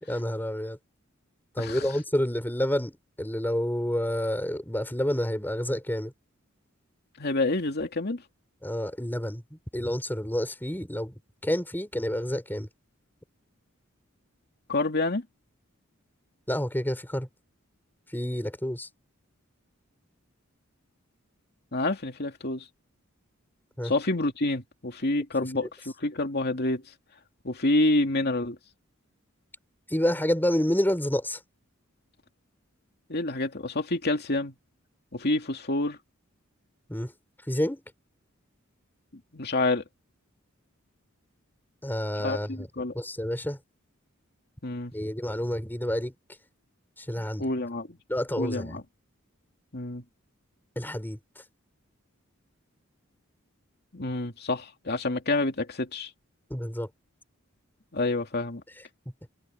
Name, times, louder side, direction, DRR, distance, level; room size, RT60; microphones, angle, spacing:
voice 1, 0.0-0.8 1.5-6.1 8.6-11.1 11.4-12.7 16.5-17.3 18.1-18.9 23.8-23.9 25.4-25.5 29.9-31.4 36.9-37.1 37.5-37.8 41.8-43.6 44.9-46.2 47.0-47.4 48.1-48.8 50.8-51.2 56.5-56.9, equal, 10° left, 4.1 m, -29 dB
voice 2, 7.2-8.2 14.7-15.2 21.7-22.7 23.8-26.8 27.4-28.6 33.1-34.5 35.1-36.0 39.3-39.8 42.2-42.9 44.6-44.9 47.2-48.0 48.4-48.8 49.7-50.0 53.9-56.1 57.9-58.6, left 2 dB, 50° left, 2.6 m, -28 dB
head